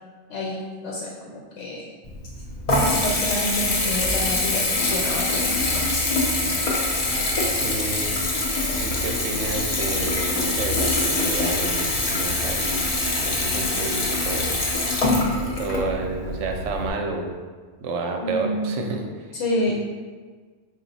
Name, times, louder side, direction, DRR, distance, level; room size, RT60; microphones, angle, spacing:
voice 1, 0.3-1.9 2.8-6.0 18.2-18.8 19.3-19.7, left 1 dB, 85° left, -3 dB, 0.9 m, -29 dB
Water tap faucet / Bathtub (filling or washing) / Trickle dribble, 2.0-16.9, left 2 dB, 45° left, 0.5 m, -24 dB
voice 2, 7.6-8.2 8.7-12.7 13.2-14.6 15.6-17.4 17.8-19.3 19.7-19.8, right 3 dB, 85° right, 2 dB, 0.9 m, -30 dB
3.8 x 2.3 x 4.0 m, 1.5 s
omnidirectional pair, 1.2 m